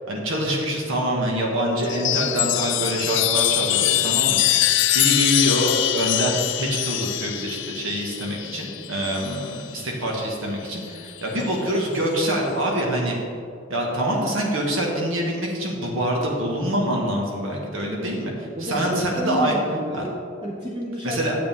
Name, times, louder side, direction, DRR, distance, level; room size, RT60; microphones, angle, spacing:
voice 1, 0.1-4.4 4.9-13.2 13.7-19.6 19.9-20.1 21.0-21.4, right 1 dB, 90° right, -1 dB, 1.8 m, -25 dB
Chime, 1.8-9.6 10.8-11.5, left 13 dB, 60° left, 0.4 m, -23 dB
voice 2, 18.6-20.2 20.4-21.2, equal, 25° right, -3 dB, 0.7 m, -30 dB
10.0 x 7.7 x 3.6 m, 2.4 s
head